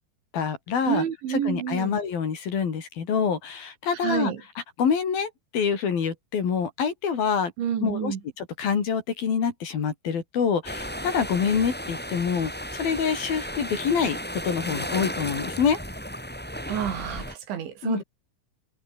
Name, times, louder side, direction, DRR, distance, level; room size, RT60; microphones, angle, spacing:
voice 1, 0.3-1.0 1.3-4.3 4.8-7.5 7.8-15.8 17.8-18.0, left 6 dB, 50° left, 4.9 m, -26 dB
voice 2, 0.9-2.0 4.0-4.4 7.6-8.2 16.7-18.0, right 9 dB, 70° right, 5.1 m, -29 dB
sound 1, 10.6-17.3, equal, ahead, 6.1 m, -34 dB
omnidirectional pair, 5.6 m